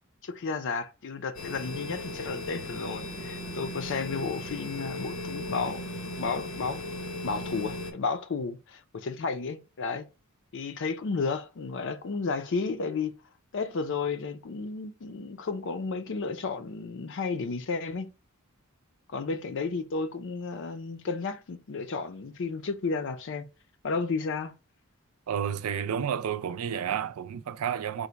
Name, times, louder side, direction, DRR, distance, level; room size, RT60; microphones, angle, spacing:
voice 1, 0.2-5.8 6.2-6.8 7.2-10.1 10.5-13.2 13.5-18.1 19.1-23.5 23.8-24.5, left 4 dB, 60° left, 0.5 m, -32 dB
sound 1, 1.3-7.9, left 1 dB, 90° left, 1.0 m, -37 dB
voice 2, 25.3-28.1, right 8 dB, 80° right, 0.4 m, -31 dB
3.9 x 2.1 x 4.4 m
head